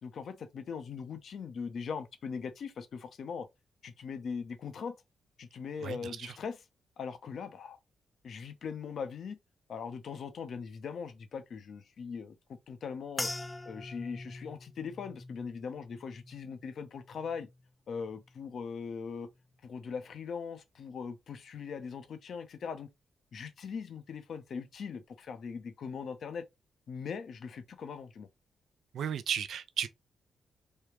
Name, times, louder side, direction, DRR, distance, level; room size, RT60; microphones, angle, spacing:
voice 1, 0.0-3.5 3.8-5.0 5.4-6.6 7.0-7.8 8.2-9.4 9.7-12.3 12.7-13.3 13.7-17.5 17.9-19.3 19.6-22.9 23.3-26.5 26.9-28.3, left 6 dB, 65° left, 0.5 m, -40 dB
voice 2, 5.8-6.4 28.9-29.9, right 8 dB, 70° right, 0.3 m, -34 dB
sound 1, 13.2-17.7 18.1-18.7 19.3-19.5, left 2 dB, 20° left, 0.3 m, -44 dB
3.2 x 2.3 x 3.1 m
supercardioid pair, 45°, 0 cm